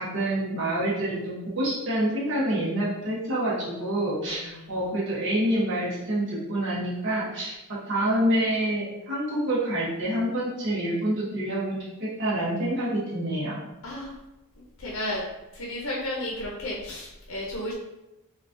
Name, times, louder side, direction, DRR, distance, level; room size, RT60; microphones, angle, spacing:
voice 1, 0.0-13.6, right 1 dB, 55° right, -6 dB, 0.8 m, -27 dB
voice 2, 4.2-4.7 13.8-14.1 14.8-15.2 15.5-17.7, left 1 dB, 60° left, -4 dB, 0.6 m, -33 dB
3.7 x 2.3 x 2.5 m, 0.95 s
head